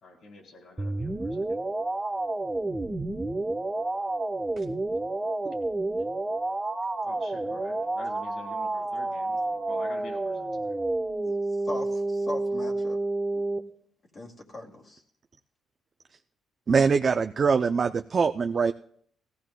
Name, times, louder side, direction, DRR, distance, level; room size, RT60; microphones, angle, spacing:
voice 1, 0.0-1.6 7.0-10.7, left 2 dB, 55° left, 1 dB, 3.9 m, -47 dB
sound 1, 0.8-13.6, right 2 dB, 15° right, 0.8 m, -30 dB
voice 2, 11.6-13.0 13.3-13.4 14.1-15.0, left 2 dB, 40° left, -2 dB, 2.3 m, -38 dB
voice 3, 16.7-18.7, right 5 dB, 40° right, 8 dB, 0.4 m, -23 dB
17.5 x 15.5 x 2.2 m, 0.62 s
cardioid pair, 90°, 0 cm